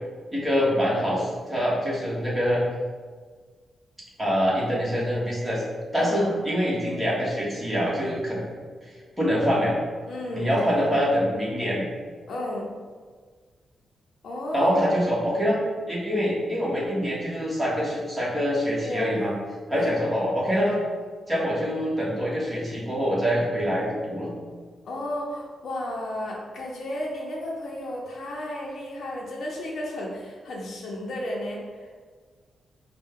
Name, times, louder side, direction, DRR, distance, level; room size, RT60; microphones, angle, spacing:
voice 1, 0.3-2.6 4.2-5.6 5.9-8.4 9.2-9.8 10.3-11.8 14.5-15.6 15.9-19.3 19.7-20.8 21.3-24.3, equal, 10° right, -6 dB, 1.3 m, -25 dB
voice 2, 6.0-6.5 10.1-10.9 12.3-12.7 14.2-14.8 15.1-15.2 18.8-19.1 19.7-19.9 24.8-32.0, left 1 dB, 70° left, -3 dB, 0.7 m, -33 dB
5.2 x 2.2 x 3.6 m, 1.5 s
cardioid pair, 105°, 0 cm